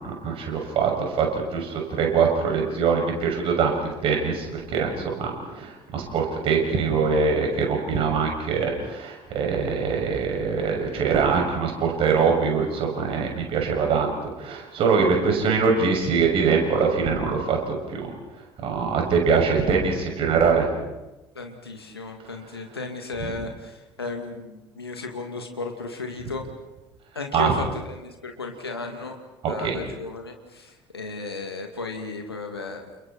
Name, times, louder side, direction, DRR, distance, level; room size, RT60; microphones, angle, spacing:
voice 1, 0.0-14.1 14.4-20.8 23.2-23.3 27.3-27.5 29.4-29.8, right 5 dB, 45° right, 2 dB, 6.6 m, -23 dB
voice 2, 21.4-26.5 27.1-29.2 29.5-32.9, left 3 dB, 85° left, 4 dB, 2.4 m, -34 dB
30.0 x 29.5 x 4.4 m, 1.0 s
figure-of-eight pair, 60°, 13 cm